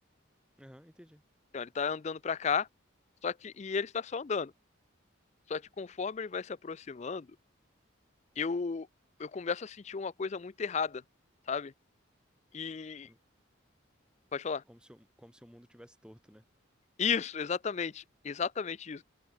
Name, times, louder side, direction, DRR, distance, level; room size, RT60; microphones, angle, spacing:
voice 1, 0.6-1.2 13.0-13.2 14.6-16.4, equal, 5° right, 7.3 m, -55 dB
voice 2, 1.5-2.7 3.2-4.5 5.5-7.3 8.4-8.9 9.2-11.0 11.5-11.7 12.5-13.1 14.3-14.6 17.0-19.0, left 6 dB, 35° left, 0.4 m, -34 dB
head